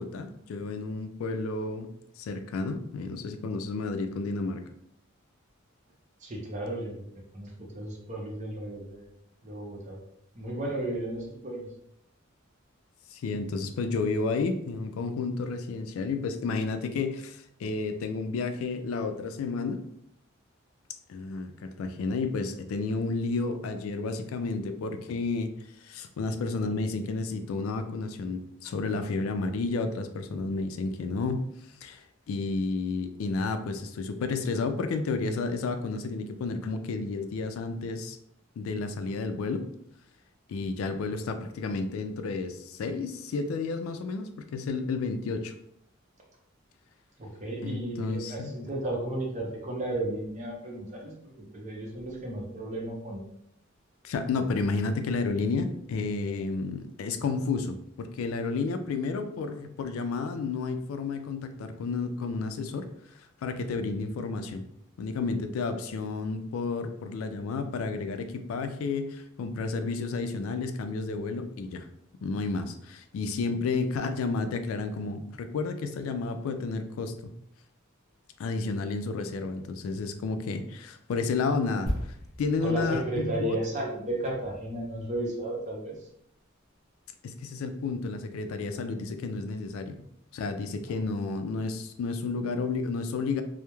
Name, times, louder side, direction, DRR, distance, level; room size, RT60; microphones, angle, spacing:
voice 1, 0.0-1.9 2.2-4.6 13.1-19.8 21.1-25.5 25.8-31.4 31.8-38.2 38.6-39.6 40.5-45.5 47.6-48.5 54.0-62.9 63.2-64.6 65.0-71.9 72.2-77.3 78.4-83.6 87.2-90.0 90.3-93.4, left 4 dB, 90° left, 8 dB, 0.3 m, -31 dB
voice 2, 6.2-7.0 7.3-9.1 9.4-10.0 10.3-11.7 47.2-53.2 82.6-86.0, right 1 dB, 35° right, -1 dB, 0.6 m, -34 dB
sound 1, 81.9-85.5 85.8-86.0, equal, 45° left, 0.8 m, -38 dB
2.2 x 2.0 x 2.9 m, 0.74 s
head